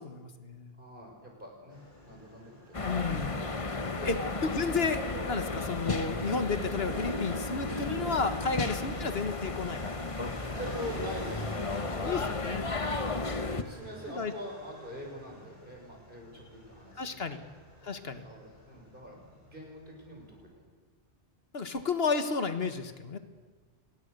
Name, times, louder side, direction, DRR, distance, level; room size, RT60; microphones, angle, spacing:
voice 1, 0.0-0.7 2.9-3.4 4.1-4.2 4.4-9.8 12.0-12.7 14.2-14.3 17.0-17.4 17.8-18.2 21.5-23.2, left 4 dB, 75° left, 9 dB, 1.7 m, -32 dB
voice 2, 0.8-2.9 3.2-3.6 3.9-4.1 8.3-8.6 10.6-11.6 11.9-12.3 12.6-12.9 13.4-17.2 18.2-20.6, equal, 55° right, 0 dB, 6.4 m, -44 dB
Motorcycle, 1.7-20.5, left 1 dB, 50° left, 5.3 m, -48 dB
sound 1, 2.7-13.6, left 3 dB, 35° left, 1.2 m, -34 dB
29.5 x 21.0 x 6.8 m, 1.5 s
omnidirectional pair, 1.0 m